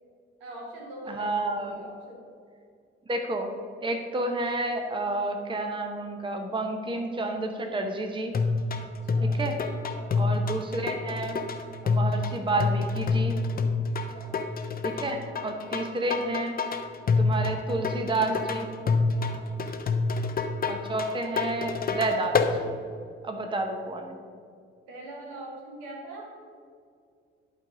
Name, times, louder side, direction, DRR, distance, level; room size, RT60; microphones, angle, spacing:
voice 1, 0.4-2.3 8.8-9.4 9.9-10.3 13.8-14.4 15.6-15.9 19.1-19.5 24.9-26.3, right 1 dB, 70° right, -1 dB, 1.6 m, -43 dB
voice 2, 1.1-1.8 3.1-3.5 3.8-8.4 9.3-9.6 10.1-11.4 11.8-13.3 14.8-16.6 17.2-18.7 20.7-22.7 23.2-24.2, right 2 dB, 15° right, 4 dB, 1.0 m, -30 dB
sound 1, 8.3-22.5, left 4 dB, 30° left, 0.8 m, -27 dB
11.5 x 4.0 x 5.0 m, 2.2 s
figure-of-eight pair, 45°, 30 cm